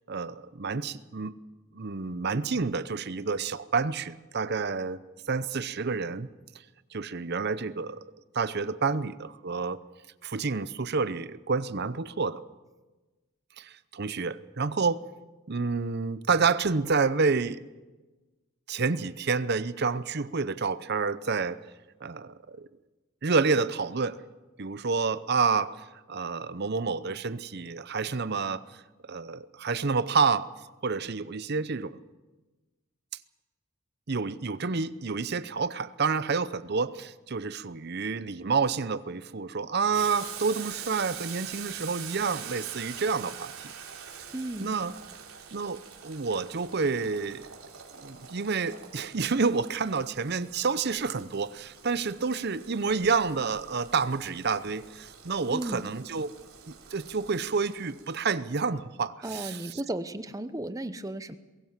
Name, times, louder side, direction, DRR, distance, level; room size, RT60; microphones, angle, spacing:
voice 1, 0.1-1.3 1.7-5.0 5.3-6.3 6.9-8.0 8.3-9.8 10.2-12.4 13.6-15.0 15.5-17.6 18.7-21.6 22.0-22.7 23.2-24.2 24.6-25.8 26.1-28.7 29.1-30.5 30.8-32.0 34.1-43.5 44.6-44.9 45.5-47.5 48.0-56.3 56.7-59.8, right 4 dB, 50° right, 15 dB, 0.7 m, -29 dB
Boiling, 39.9-58.3, right 8 dB, 80° right, 3.4 m, -45 dB
voice 2, 44.3-44.7 55.5-55.9 59.2-61.4, right 1 dB, 15° right, 12 dB, 0.7 m, -34 dB
21.5 x 17.5 x 7.4 m, 1.2 s
head